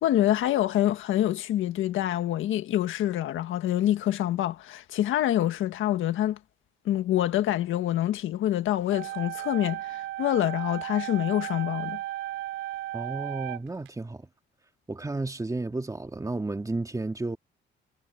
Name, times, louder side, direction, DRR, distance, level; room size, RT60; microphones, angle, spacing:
voice 1, 0.0-6.4 6.8-12.0, left 13 dB, 80° left, 1.6 m, -26 dB
sound 1, 8.9-13.9, right 15 dB, 90° right, 6.8 m, -35 dB
voice 2, 12.9-14.2 14.9-17.4, right 2 dB, 15° right, 2.3 m, -32 dB
cardioid pair, 90°, 20 cm